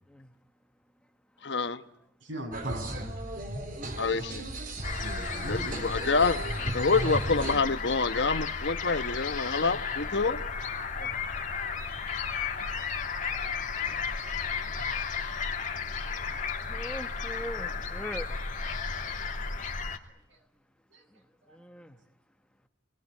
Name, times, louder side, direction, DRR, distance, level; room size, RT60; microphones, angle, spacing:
voice 1, 1.4-1.8 4.0-4.4 5.5-6.4 6.7-10.4, left 4 dB, 55° left, 1.2 m, -27 dB
voice 2, 2.2-3.1 5.0-5.9 10.1-10.2 20.3-20.4 20.9-21.0 21.5-21.7, right 1 dB, 70° right, 7.9 m, -40 dB
sound 1, 2.5-7.6, right 1 dB, 40° right, 3.7 m, -35 dB
sound 2, 4.8-20.0, left 5 dB, 40° left, 2.8 m, -34 dB
voice 3, 16.3-18.7 21.1-22.0, equal, 5° left, 1.4 m, -43 dB
27.0 x 21.0 x 9.7 m
head